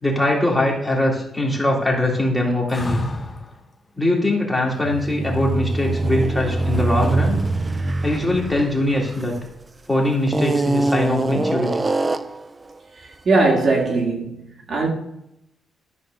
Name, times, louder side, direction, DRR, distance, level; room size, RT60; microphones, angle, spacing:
voice 1, 0.0-3.0 4.0-7.4 8.0-9.3 9.9-11.8, left 1 dB, 5° left, 2.5 m, -21 dB
sound 1, 2.7-3.6 6.2-6.8, left 2 dB, 20° left, 1.4 m, -28 dB
sound 2, 4.8-9.6 10.3-12.5, right 2 dB, 15° right, 0.4 m, -23 dB
voice 2, 13.3-14.9, right 3 dB, 40° right, 1.9 m, -19 dB
12.5 x 4.2 x 6.5 m
cardioid pair, 165°, 0 cm